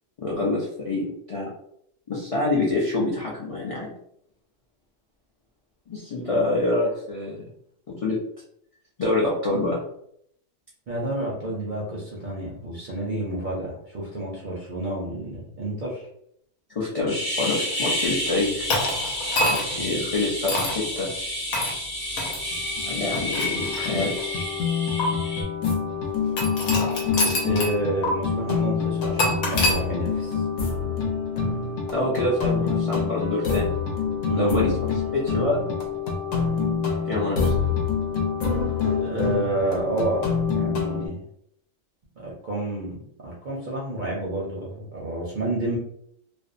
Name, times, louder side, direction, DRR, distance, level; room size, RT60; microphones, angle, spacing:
voice 1, 0.2-1.5 2.1-3.9 5.9-7.4 7.9-8.2 9.0-9.8 16.7-18.7 19.5-21.1 22.8-24.1 29.2-29.3 31.9-33.7 34.3-34.7 35.1-35.7 37.0-37.5, left 2 dB, 55° left, -6 dB, 0.3 m, -26 dB
voice 2, 10.9-16.1 19.7-20.1 27.2-30.4 34.2-34.7 39.0-41.2 42.2-45.8, right 1 dB, 55° right, -4 dB, 0.5 m, -30 dB
sound 1, 17.1-25.4, left 1 dB, 20° left, 0.7 m, -30 dB
sound 2, 18.7-19.8 20.5-20.8 21.5-21.8 22.2-22.4 23.1-24.2 25.0-25.1 26.4-27.8 28.0-28.1 29.2-29.8, left 1 dB, 90° left, 1.1 m, -26 dB
sound 3, 22.1-22.2 22.5-41.1, left 5 dB, 70° left, 1.0 m, -26 dB
2.5 x 2.1 x 2.5 m, 0.71 s
omnidirectional pair, 1.4 m